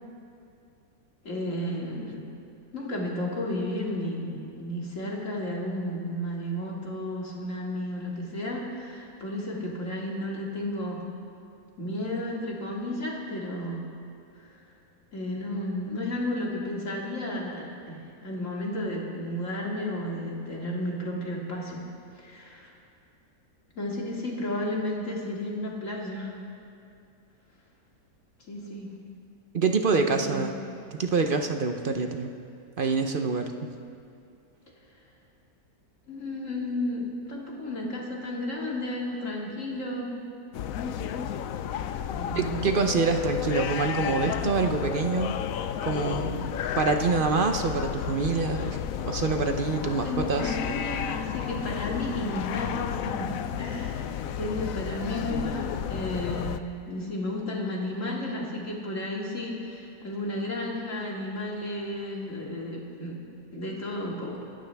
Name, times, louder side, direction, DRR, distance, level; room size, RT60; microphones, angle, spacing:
voice 1, 1.2-2.2 2.7-11.0 11.8-13.8 14.3-14.5 15.1-21.8 22.2-22.7 23.8-26.3 28.5-28.9 29.9-30.4 36.1-40.1 42.1-42.6 49.5-63.3 63.5-64.4, left 1 dB, 50° left, -3 dB, 2.6 m, -33 dB
voice 2, 29.5-30.5 30.9-32.3 32.8-33.7 42.3-45.4 45.8-46.5 46.8-50.6, right 4 dB, 50° right, 5 dB, 0.7 m, -26 dB
sound 1, 40.5-56.6, left 9 dB, 70° left, 0.9 m, -32 dB
24.5 x 13.0 x 3.5 m, 2.5 s
omnidirectional pair, 1.7 m